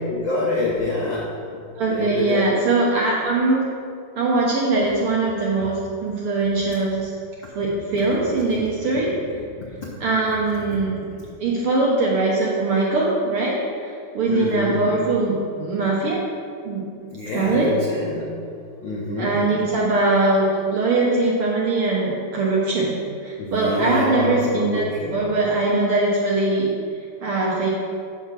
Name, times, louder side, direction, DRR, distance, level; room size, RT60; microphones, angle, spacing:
voice 1, 0.1-1.3 1.9-2.7 5.6-5.7 11.0-11.1 14.3-14.9 17.1-18.3 18.8-19.5 23.4-25.3, left 2 dB, 80° left, -3 dB, 1.0 m, -26 dB
voice 2, 1.8-3.6 4.2-7.1 7.5-9.2 10.0-10.9 11.4-16.2 16.6-16.9 17.3-17.8 19.2-26.7 27.2-27.7, right 2 dB, 65° right, -4 dB, 1.4 m, -21 dB
6.5 x 5.5 x 6.0 m, 2.3 s
omnidirectional pair, 3.4 m